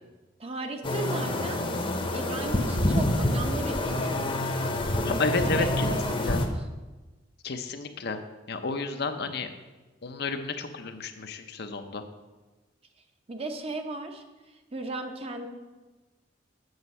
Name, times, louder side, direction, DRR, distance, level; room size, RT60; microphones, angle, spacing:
voice 1, 0.4-1.7 2.1-4.6 4.9-5.2 5.6-6.4 13.3-14.2 14.7-15.5, right 2 dB, 30° right, 5 dB, 0.8 m, -36 dB
sound 1, 0.8-6.5, left 1 dB, 30° left, 0.9 m, -27 dB
voice 2, 5.0-6.4 7.4-8.2 8.5-9.5 10.0-12.0, left 3 dB, 55° left, 7 dB, 0.7 m, -31 dB
8.0 x 7.1 x 5.5 m, 1.2 s
head